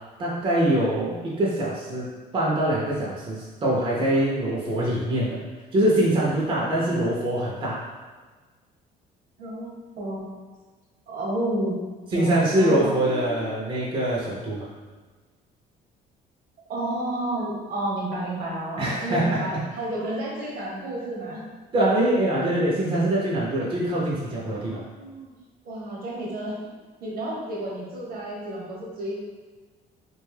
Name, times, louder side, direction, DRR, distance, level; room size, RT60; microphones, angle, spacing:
voice 1, 0.2-5.4 5.7-7.8 12.1-14.7 18.8-19.6 21.7-24.8, right 1 dB, 30° right, -5 dB, 0.6 m, -24 dB
voice 2, 6.7-7.3 9.4-10.3 11.1-11.8 12.1-13.6 16.7-21.4 24.5-25.3 25.6-26.6 27.0-29.2, right 1 dB, 60° right, -3 dB, 0.9 m, -31 dB
2.5 x 2.2 x 3.2 m, 1.4 s
cardioid pair, 110°, 17 cm